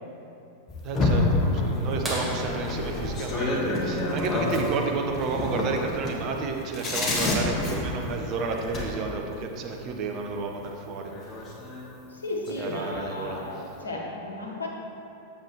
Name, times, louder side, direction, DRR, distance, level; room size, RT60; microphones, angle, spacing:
sound 1, 0.7-8.8 10.6-10.7 11.1-11.9 12.3-13.0, left 2 dB, 25° left, 1.1 m, -28 dB
voice 1, 0.8-11.1 12.5-13.4, right 4 dB, 35° right, 2 dB, 0.7 m, -31 dB
Bowed string instrument, 1.3-6.2, equal, 50° left, 1.4 m, -38 dB
sound 2, 2.0-4.5 6.4-6.5 8.8-8.9 10.6-10.8 11.6-11.7, right 1 dB, 15° right, 1.3 m, -36 dB
voice 2, 12.1-14.7, left 2 dB, 75° left, -2 dB, 1.1 m, -34 dB
7.6 x 6.8 x 2.9 m, 2.9 s
figure-of-eight pair, 90°, 0 cm